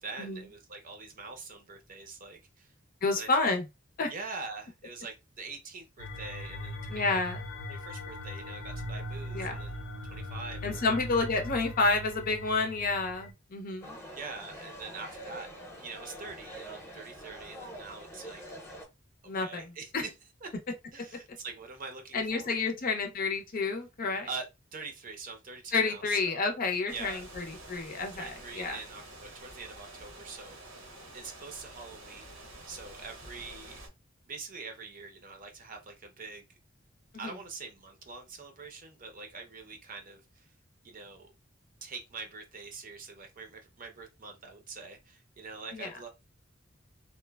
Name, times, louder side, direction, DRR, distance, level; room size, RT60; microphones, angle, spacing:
voice 1, 0.0-2.7 3.1-3.3 4.1-7.2 7.7-9.8 10.1-11.0 14.1-18.4 19.2-20.1 20.4-20.5 20.9-22.5 24.2-24.5 24.7-26.4 26.9-27.2 28.1-30.9 31.1-33.8 34.2-36.5 37.2-40.5 40.8-41.3 41.8-46.1, right 4 dB, 45° right, 0.6 m, -44 dB
voice 2, 3.0-3.6 4.0-4.1 6.9-7.4 9.3-9.6 10.6-14.0 19.3-19.6 19.9-20.0 22.1-24.3 25.7-28.8 37.1-37.3 45.7-45.9, left 3 dB, 45° left, 0.5 m, -30 dB
sound 1, 6.0-13.3, left 1 dB, 90° left, 0.6 m, -40 dB
sound 2, 13.8-18.8, equal, 15° left, 0.8 m, -45 dB
sound 3, 26.9-33.9, right 1 dB, 90° right, 1.0 m, -48 dB
3.0 x 2.1 x 2.2 m
head